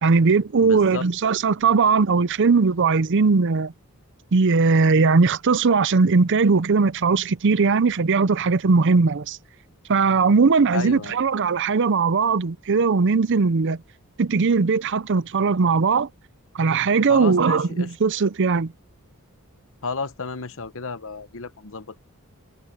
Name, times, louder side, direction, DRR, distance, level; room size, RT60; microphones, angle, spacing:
voice 1, 0.0-3.7 4.3-9.4 9.9-13.8 14.2-16.1 16.5-18.7, right 4 dB, 55° right, 0.6 m, -19 dB
voice 2, 0.6-1.0 10.7-11.2 17.1-17.9 19.8-22.0, left 4 dB, 60° left, 1.1 m, -32 dB
head